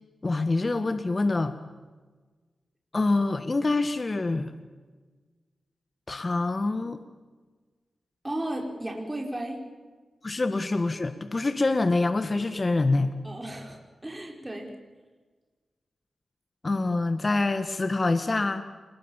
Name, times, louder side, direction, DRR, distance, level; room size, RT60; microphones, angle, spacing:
voice 1, 0.2-1.6 2.9-4.5 6.1-7.0 10.2-13.1 16.6-18.6, left 3 dB, 40° left, 10 dB, 1.7 m, -25 dB
voice 2, 8.2-9.6 13.2-14.7, right 1 dB, 15° right, 1 dB, 5.2 m, -34 dB
28.0 x 21.5 x 7.4 m, 1.3 s
cardioid pair, 55°, 0 cm